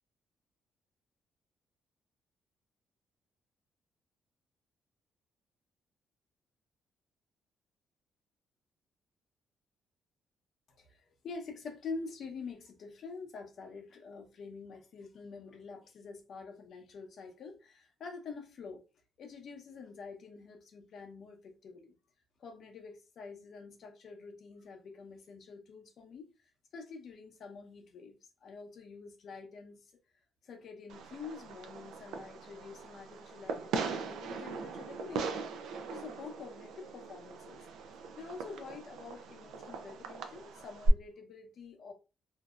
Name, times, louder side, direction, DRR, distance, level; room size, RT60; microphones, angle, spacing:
voice 1, 10.8-18.8 19.2-21.9 22.4-26.3 26.7-29.9 30.4-35.5 35.9-37.6 38.2-41.9, left 4 dB, 65° left, 0.7 m, -47 dB
Fireworks, 30.9-40.9, right 4 dB, 85° right, 0.4 m, -39 dB
2.6 x 2.0 x 2.3 m
cardioid pair, 90°, 0 cm